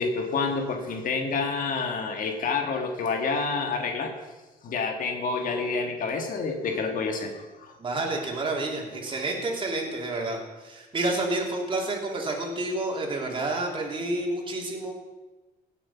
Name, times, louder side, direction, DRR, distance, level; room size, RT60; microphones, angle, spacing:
voice 1, 0.0-4.1 4.6-7.8, left 4 dB, 55° left, 4 dB, 1.7 m, -28 dB
voice 2, 7.8-14.9, right 2 dB, 30° right, 0 dB, 3.2 m, -29 dB
17.5 x 7.6 x 5.7 m, 1.2 s
cardioid pair, 110°, 17 cm